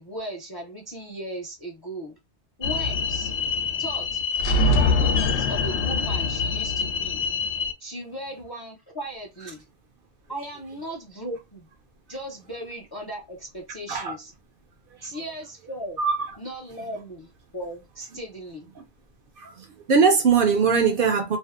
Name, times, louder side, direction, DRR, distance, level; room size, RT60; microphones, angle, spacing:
voice 1, 0.0-2.2 2.6-3.3 3.8-4.2 4.7-7.2 7.8-9.6 10.3-11.7 12.1-14.3 15.0-16.0 16.4-18.7, right 1 dB, 35° left, 0.4 m, -37 dB
sound 1, 2.6-7.7, left 4 dB, 85° left, 0.9 m, -24 dB
voice 2, 16.0-16.3 19.4-21.4, right 5 dB, 60° right, 0.7 m, -21 dB
2.6 x 2.0 x 2.3 m
omnidirectional pair, 1.1 m